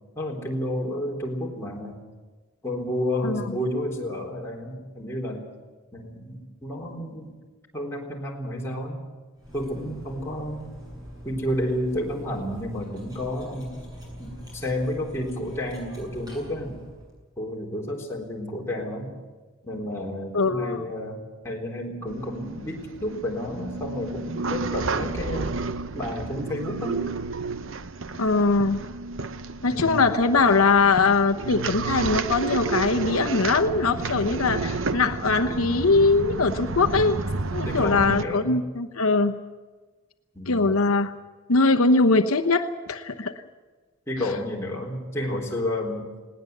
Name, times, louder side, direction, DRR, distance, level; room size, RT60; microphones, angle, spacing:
voice 1, 0.2-2.0 2.6-5.5 5.9-7.4 7.7-9.0 9.5-10.7 11.2-13.8 14.2-16.8 17.4-19.2 19.7-25.6 25.9-27.1 29.7-30.0 37.7-38.6 40.3-40.8 44.1-46.1, left 1 dB, 10° left, -2 dB, 3.8 m, -31 dB
Cutlery silverware, 9.4-17.1, equal, 20° right, 7.7 m, -42 dB
voice 2, 20.3-20.8 28.2-28.8 29.6-37.2 37.5-39.4 40.5-41.1 41.5-43.4, left 3 dB, 75° left, 5 dB, 1.0 m, -21 dB
sound 1, 22.1-38.2, right 3 dB, 60° right, 0.8 m, -31 dB
20.0 x 18.5 x 8.1 m, 1.3 s
head